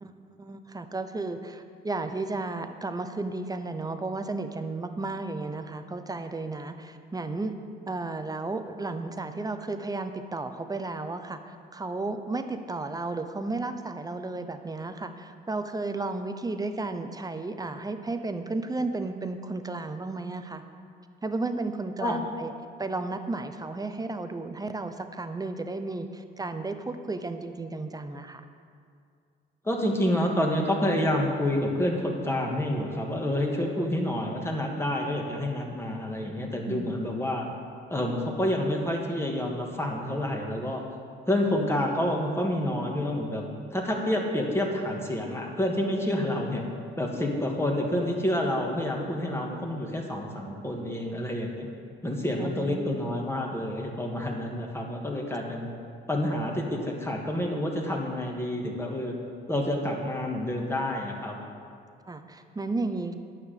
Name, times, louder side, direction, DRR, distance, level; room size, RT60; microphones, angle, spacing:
voice 1, 0.0-7.5 7.9-20.6 21.2-22.5 22.8-28.4 33.8-33.9 36.7-37.0 52.4-53.0 62.1-63.1, right 3 dB, 20° right, 8 dB, 0.8 m, -33 dB
voice 2, 29.6-37.5 37.9-40.8 41.3-43.5 43.7-46.6 47.0-51.7 52.0-55.7 56.1-59.1 59.5-61.4, left 1 dB, 10° left, 0 dB, 1.9 m, -28 dB
9.5 x 5.9 x 6.8 m, 2.3 s
supercardioid pair, 65°, 21 cm